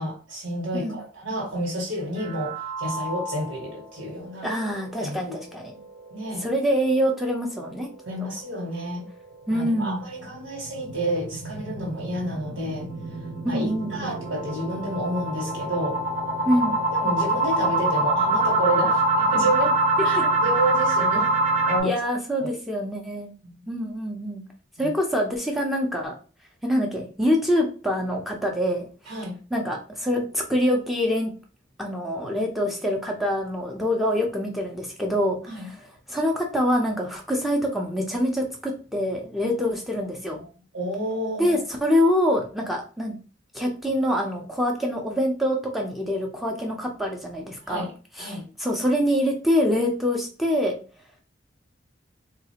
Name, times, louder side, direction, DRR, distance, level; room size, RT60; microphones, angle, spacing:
voice 1, 0.0-4.5 5.0-5.3 6.1-6.5 8.0-9.0 9.5-12.9 13.2-16.0 16.9-19.8 20.0-21.9 22.4-22.5 23.4-23.6 24.8-24.9 29.0-29.4 35.5-35.7 40.7-41.6 47.7-47.9 48.2-48.5, right 1 dB, 80° right, -3 dB, 1.4 m, -30 dB
sound 1, 2.2-3.7 4.1-4.2 4.5-4.6 5.1-5.2 10.0-21.8, right 2 dB, 40° right, 0.8 m, -25 dB
voice 2, 4.4-5.8 6.4-7.9 8.2-8.3 9.5-10.0 13.4-14.1 16.5-16.8 21.8-23.3 23.7-24.4 24.8-26.1 26.6-28.9 29.5-31.3 31.8-35.7 36.1-40.4 41.4-43.1 43.5-47.9 48.2-50.8, equal, ahead, 0 dB, 0.6 m, -25 dB
3.9 x 2.4 x 2.8 m, 0.37 s
head